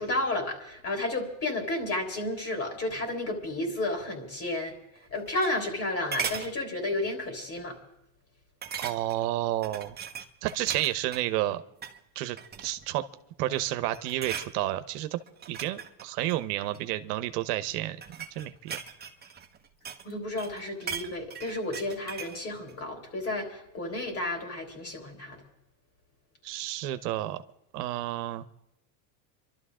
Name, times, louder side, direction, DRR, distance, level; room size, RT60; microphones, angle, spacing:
voice 1, 0.0-4.7 5.1-7.8 20.0-25.4, left 2 dB, 30° left, 3 dB, 3.6 m, -32 dB
sound 1, 5.0-5.8 6.1-6.5 7.0-7.3 7.6-7.7 8.6-9.3 9.6-11.3 11.7-12.0 12.4-12.9 13.4-13.7 13.9-14.5 15.3-16.9 17.7-20.1 20.4-22.4 22.7-22.8, right 6 dB, 20° right, 1.4 m, -38 dB
voice 2, 8.8-10.0 10.4-11.6 12.1-13.0 13.4-15.2 15.5-18.0 18.3-18.8 26.4-27.4 27.7-28.4, right 15 dB, 80° right, 11 dB, 1.1 m, -30 dB
27.5 x 12.5 x 3.7 m, 0.85 s
supercardioid pair, 130°, 46 cm